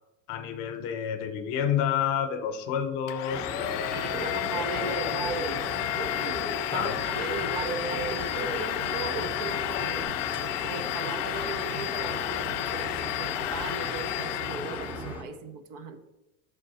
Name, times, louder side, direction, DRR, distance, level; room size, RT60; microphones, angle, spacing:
voice 1, 0.3-4.1 4.7-5.1 6.7-7.0, left 8 dB, 60° left, 9 dB, 0.8 m, -30 dB
Domestic sounds home sounds, 3.1-15.2, left 15 dB, 75° left, 0.5 m, -32 dB
sound 1, 3.3-15.2, equal, 5° right, 0.7 m, -38 dB
Bird, 3.5-10.0, right 4 dB, 90° right, 1.0 m, -38 dB
voice 2, 3.9-5.8 6.1-6.5 6.7-10.1 10.6-16.1, right 4 dB, 60° right, 8 dB, 1.0 m, -38 dB
6.7 x 3.6 x 5.5 m, 0.98 s
supercardioid pair, 125°, 38 cm